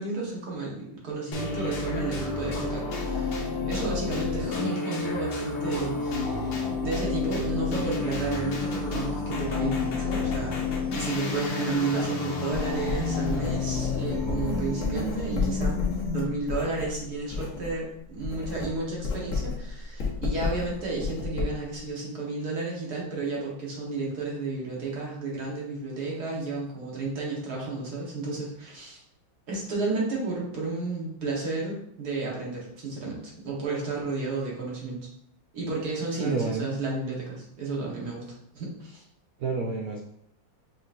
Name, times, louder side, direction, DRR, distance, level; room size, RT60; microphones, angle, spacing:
voice 1, 0.0-15.8 16.1-29.0 29.5-35.0 35.5-38.2 38.5-39.0, right 3 dB, 55° right, -3 dB, 1.6 m, -32 dB
sound 1, 1.3-16.4, left 4 dB, 75° left, 1.5 m, -30 dB
Writing, 12.5-17.8 18.1-21.8, left 4 dB, 50° left, 1.0 m, -32 dB
voice 2, 36.2-36.7 39.4-40.0, right 4 dB, 90° right, 0 dB, 0.7 m, -29 dB
5.5 x 2.9 x 2.5 m, 0.70 s
omnidirectional pair, 2.2 m